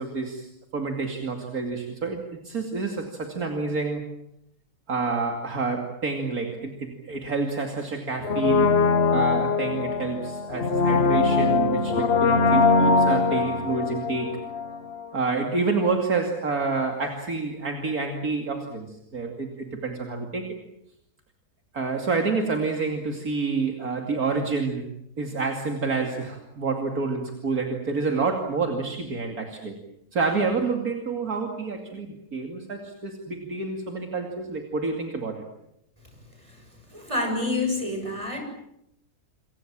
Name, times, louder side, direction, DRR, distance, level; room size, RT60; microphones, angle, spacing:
voice 1, 0.0-4.0 4.9-8.7 9.1-14.4 15.1-20.5 21.7-24.9 25.2-29.8 30.1-35.4, right 4 dB, 65° right, 3 dB, 3.0 m, -28 dB
Brass instrument, 8.2-15.1 15.3-15.4, left 4 dB, 45° left, 1.4 m, -22 dB
voice 2, 36.9-38.4, left 2 dB, 20° right, 4 dB, 7.1 m, -28 dB
28.5 x 24.5 x 7.5 m, 0.79 s
omnidirectional pair, 1.7 m